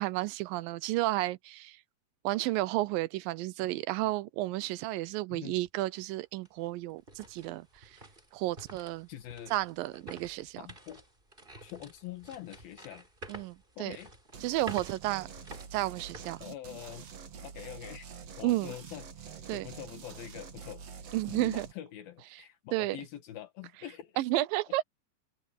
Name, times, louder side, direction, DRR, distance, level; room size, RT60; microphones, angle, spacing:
voice 1, 0.0-1.8 2.2-8.0 8.3-9.1 9.5-10.6 13.3-14.0 14.4-15.3 15.7-16.4 18.4-18.8 19.5-19.7 21.1-21.7 22.7-23.0 24.2-24.8, right 17 dB, 80° right, 2.4 m, -32 dB
sound 1, 5.6-5.7 6.2-17.2 17.5-17.7 18.3-18.6, right 1 dB, 15° right, 5.0 m, -50 dB
voice 2, 9.1-9.5 10.6-11.0 11.6-13.1 13.8-14.1 16.4-17.0 17.4-20.8 21.3-24.2, left 12 dB, 80° left, 3.4 m, -45 dB
sound 2, 14.3-21.7, right 6 dB, 50° right, 2.8 m, -47 dB
open air
omnidirectional pair, 4.1 m